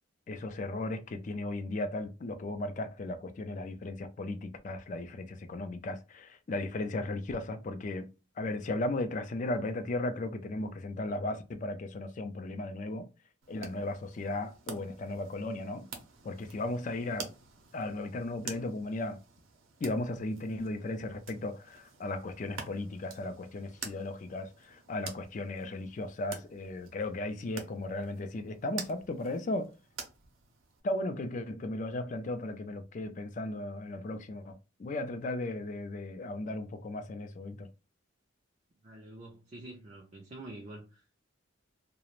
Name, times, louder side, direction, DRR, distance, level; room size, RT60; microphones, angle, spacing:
voice 1, 0.3-8.1 8.4-13.1 13.5-15.9 16.2-17.3 17.7-19.2 19.8-29.7 30.8-37.7, left 2 dB, 40° left, 0.3 m, -36 dB
sound 1, 13.4-30.8, right 5 dB, 80° right, 0.6 m, -48 dB
voice 2, 38.8-41.2, right 1 dB, 35° right, 0.4 m, -47 dB
2.4 x 2.0 x 3.0 m
head